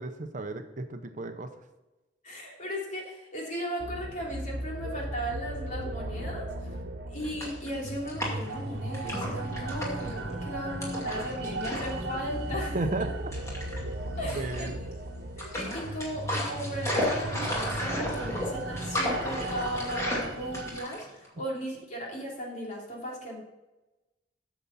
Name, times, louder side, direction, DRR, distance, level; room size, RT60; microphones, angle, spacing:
voice 1, 0.0-1.5 12.7-13.3 14.3-14.8, right 2 dB, 45° right, 7 dB, 0.8 m, -33 dB
voice 2, 2.2-6.8 7.1-12.8 14.2-14.7 15.4-23.4, equal, 45° left, -2 dB, 3.1 m, -36 dB
sound 1, 3.8-20.8, right 1 dB, 85° right, 1.1 m, -36 dB
sound 2, 7.2-8.6 8.9-10.1 10.8-12.0 12.3-12.5 13.3-13.8 14.3-14.9 15.4-21.3, left 1 dB, 15° left, 2.4 m, -33 dB
9.2 x 7.1 x 4.2 m, 1.0 s
head